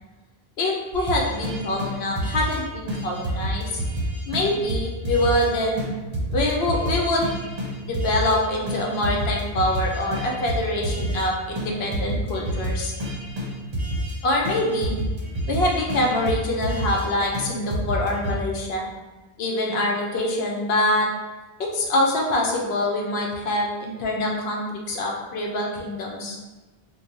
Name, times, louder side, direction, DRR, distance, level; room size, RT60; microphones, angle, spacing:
voice 1, 0.6-3.8 4.3-5.8 6.3-7.4 7.8-12.9 14.2-15.0 15.5-18.9 19.4-21.1 21.7-26.4, left 1 dB, 80° left, -1 dB, 0.9 m, -25 dB
sound 1, 0.9-2.6 2.9-5.5 5.8-5.9 6.1-8.4 8.7-11.3 11.6-11.7 11.9-14.2 14.5-17.1 17.3-17.5 17.7-18.4, equal, 45° right, 0.7 m, -28 dB
3.0 x 2.2 x 3.8 m, 1.2 s
omnidirectional pair, 1.0 m